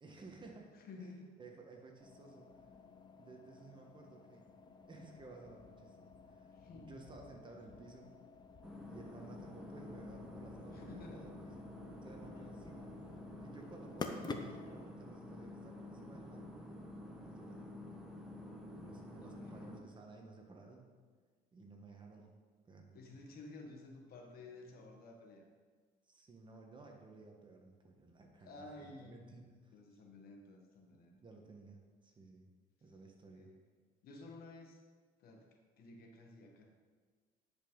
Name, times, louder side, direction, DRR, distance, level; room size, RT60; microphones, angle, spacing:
voice 1, 0.0-1.1 1.4-2.5 3.2-4.5 4.8-8.1 8.9-12.9 13.4-16.5 17.0-17.8 18.8-20.9 21.5-22.3 22.7-23.3 26.1-28.6 29.0-30.0 30.9-32.5 32.8-33.5, right 3 dB, 30° right, 1 dB, 1.3 m, -56 dB
voice 2, 0.7-1.4 6.5-7.0 10.7-11.3 12.3-12.4 19.2-19.8 22.9-25.5 28.4-29.3 29.7-31.1 33.3-33.6 34.0-34.8 35.2-35.5 35.8-36.7, left 2 dB, 65° left, 2 dB, 1.4 m, -53 dB
sound 1, 2.0-14.9, left 3 dB, 25° left, 0.7 m, -51 dB
sound 2, 8.6-19.8, left 1 dB, 5° right, 1.0 m, -50 dB
10.0 x 5.3 x 3.9 m, 1.5 s
cardioid pair, 110°, 17 cm